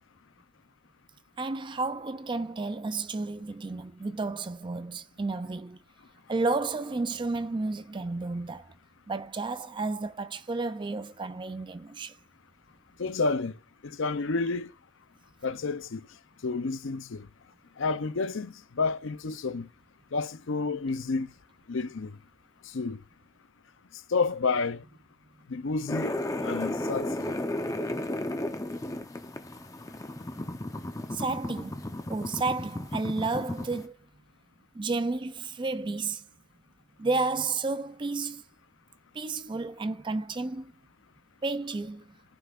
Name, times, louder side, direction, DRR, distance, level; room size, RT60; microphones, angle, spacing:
voice 1, 1.4-5.8 6.3-8.7 9.1-12.2 31.1-34.0 34.7-36.3 37.0-38.4 39.1-40.7 41.4-42.2, right 3 dB, 25° right, 0.4 m, -32 dB
voice 2, 13.0-13.5 13.8-14.7 15.4-16.1 16.4-17.3 17.8-19.7 20.1-21.3 21.7-22.2 22.7-23.0 24.1-24.8 25.5-26.2 26.4-27.1, left 4 dB, 65° left, 0.6 m, -30 dB
sound 1, 25.9-33.9, left 1 dB, 15° left, 0.7 m, -34 dB
14.5 x 5.7 x 2.4 m
head